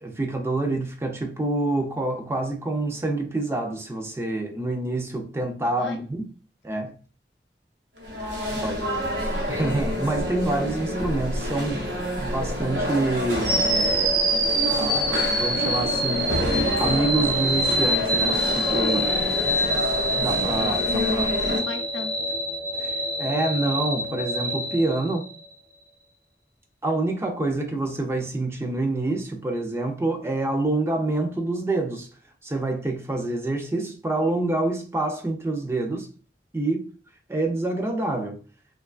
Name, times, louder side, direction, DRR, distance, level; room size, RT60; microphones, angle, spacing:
voice 1, 0.0-6.2 6.6-6.9 8.5-8.9 9.5-14.1 14.8-19.1 20.2-21.3 22.8-25.2 26.8-32.1 32.4-36.1 36.5-36.8 37.3-38.4, right 2 dB, 15° right, 0.4 m, -27 dB
voice 2, 5.7-6.0 8.3-9.0 19.3-19.8 20.9-22.2, left 3 dB, 85° left, 0.5 m, -37 dB
sound 1, 8.0-21.6, equal, 90° right, 0.8 m, -28 dB
sound 2, 13.4-25.5, equal, 50° right, 1.1 m, -25 dB
3.0 x 2.3 x 2.3 m
head